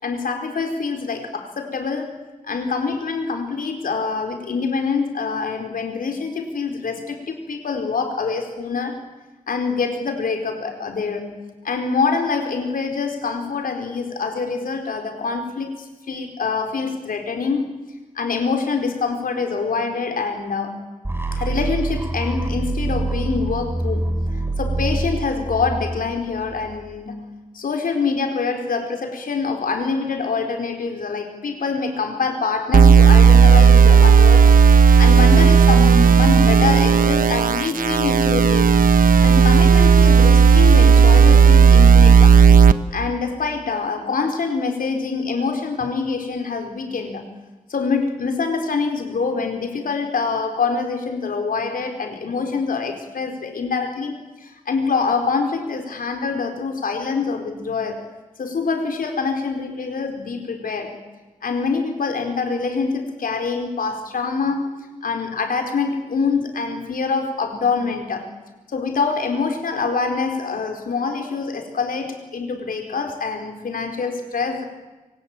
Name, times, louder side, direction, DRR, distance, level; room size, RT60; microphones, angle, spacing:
voice 1, 0.0-9.0 9.5-11.4 11.6-17.8 18.1-20.9 21.3-24.1 24.3-27.3 27.5-34.5 35.0-38.7 39.2-42.4 42.9-47.3 47.7-58.0 58.4-61.0 61.4-68.3 68.7-74.6, left 4 dB, 85° left, 5 dB, 4.4 m, -25 dB
sound 1, 21.0-27.0, right 2 dB, 15° right, 3.4 m, -25 dB
sound 2, 32.7-42.7, right 6 dB, 85° right, 1.2 m, -12 dB
26.5 x 23.5 x 8.9 m, 1.2 s
wide cardioid pair, 130°, 14 cm